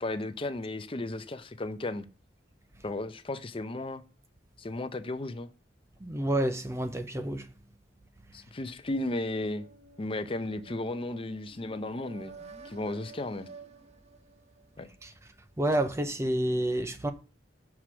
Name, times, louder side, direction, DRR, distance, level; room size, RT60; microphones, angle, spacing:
voice 1, 0.0-2.0 2.8-4.0 4.6-5.5 8.3-9.7 10.0-12.3 12.6-13.5 14.8-14.9, left 2 dB, 30° left, 0.6 m, -34 dB
voice 2, 6.0-7.5 15.0-15.1 15.6-17.1, right 1 dB, 15° right, 0.5 m, -29 dB
sound 1, 9.3-15.1, right 4 dB, 40° right, 1.0 m, -51 dB
5.9 x 4.8 x 5.9 m
head